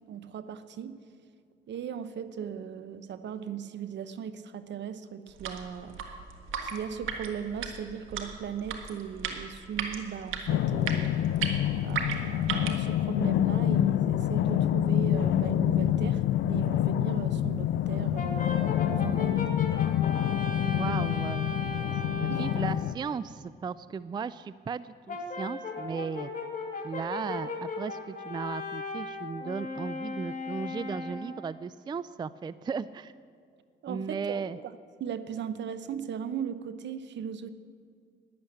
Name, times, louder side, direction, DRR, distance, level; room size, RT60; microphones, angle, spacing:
voice 1, 0.1-1.0 1.7-6.0 6.6-11.2 11.8-18.5 18.9-19.5 20.6-21.1 22.3-22.4 33.8-34.7 35.0-37.5, right 8 dB, 65° right, 13 dB, 0.9 m, -38 dB
sound 1, 5.3-12.9, right 7 dB, 85° right, 1.5 m, -36 dB
sound 2, 10.5-23.0, left 11 dB, 75° left, 0.5 m, -27 dB
Brass instrument, 18.1-22.7 25.1-31.4, left 3 dB, 40° left, 1.9 m, -37 dB
voice 2, 20.7-21.5 22.1-26.3 26.8-33.1 33.9-34.6, right 6 dB, 20° right, 17 dB, 0.3 m, -36 dB
12.0 x 10.5 x 8.7 m, 2.3 s
cardioid pair, 90°, 20 cm